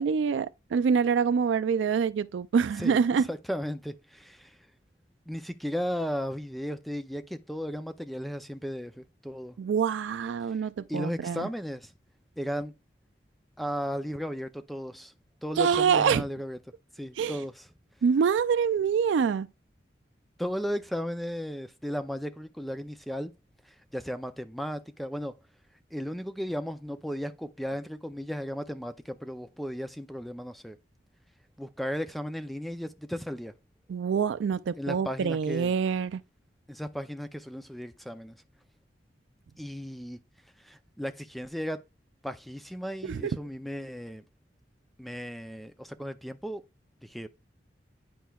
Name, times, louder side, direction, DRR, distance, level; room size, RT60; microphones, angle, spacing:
voice 1, 0.0-3.3 9.6-11.5 15.6-16.2 17.2-17.4 18.0-19.5 33.9-36.2 43.0-43.3, right 6 dB, 90° right, 0.3 m, -26 dB
voice 2, 3.3-4.6 5.3-9.6 10.5-10.6 10.9-11.9 12.4-12.7 13.6-15.1 15.4-16.6 16.9-17.7 20.4-23.3 23.6-25.3 25.9-30.8 31.6-33.5 34.8-35.7 36.7-38.4 39.6-40.2 40.6-41.8 42.2-44.2 45.0-46.6 47.0-47.3, equal, ahead, 0.4 m, -35 dB
10.5 x 4.5 x 2.3 m
head